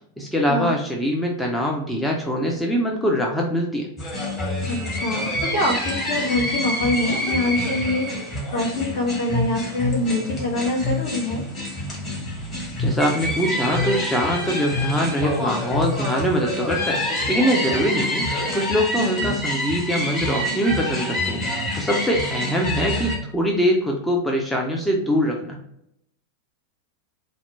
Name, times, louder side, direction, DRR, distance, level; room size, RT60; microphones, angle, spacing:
voice 1, 0.2-3.9 12.3-12.5 12.8-18.3 18.5-25.6, equal, 5° left, 0 dB, 0.6 m, -23 dB
sound 1, 4.0-23.2, left 1 dB, 25° left, 1.6 m, -27 dB
voice 2, 4.7-8.1 8.5-11.4 19.2-19.3, left 2 dB, 50° left, 0 dB, 1.1 m, -24 dB
4.1 x 2.1 x 4.4 m, 0.76 s
figure-of-eight pair, 90°, 0 cm